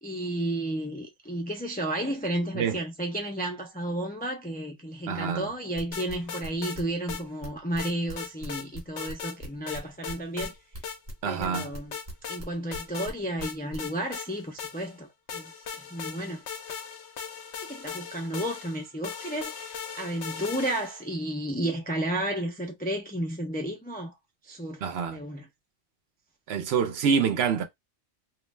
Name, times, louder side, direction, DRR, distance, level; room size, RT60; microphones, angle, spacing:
voice 1, 0.0-10.6 11.2-12.0 12.3-16.4 17.6-24.1 24.4-24.8 25.1-25.5, right 1 dB, 15° left, 0.3 m, -32 dB
voice 2, 5.1-5.4 11.2-11.7 24.8-25.2 26.5-27.6, right 6 dB, 70° right, 0.8 m, -26 dB
sound 1, 5.8-11.5 11.7-13.1 13.4-13.8, equal, 40° right, 1.1 m, -40 dB
sound 2, 5.9-6.8 7.1-7.2 7.8-8.7 9.0-9.4 9.7-10.5 10.8-11.0 11.5-12.4 12.7-13.1 13.4-15.0 15.3-21.1, left 7 dB, 90° left, 0.9 m, -38 dB
2.4 x 2.1 x 3.1 m
omnidirectional pair, 1.2 m